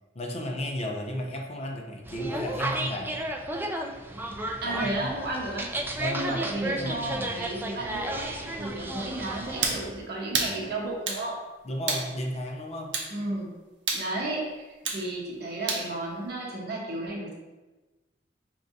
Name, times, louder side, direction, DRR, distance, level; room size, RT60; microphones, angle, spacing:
voice 1, 0.1-3.2 4.6-5.1 6.0-7.3 11.6-13.0, left 1 dB, 35° left, 2 dB, 0.5 m, -34 dB
sound 1, 2.0-9.9, right 1 dB, 10° right, 0.3 m, -33 dB
voice 2, 4.6-11.4 13.1-13.5 13.9-14.5 14.9-17.3, right 2 dB, 60° right, -3 dB, 1.0 m, -33 dB
sound 2, 9.6-9.8 10.3-10.6 11.1-11.2 11.9-12.1 12.9-13.1 13.9-14.1 14.9-15.0 15.7-15.9, right 4 dB, 85° right, 0.7 m, -28 dB
5.2 x 3.3 x 2.6 m, 1.2 s
head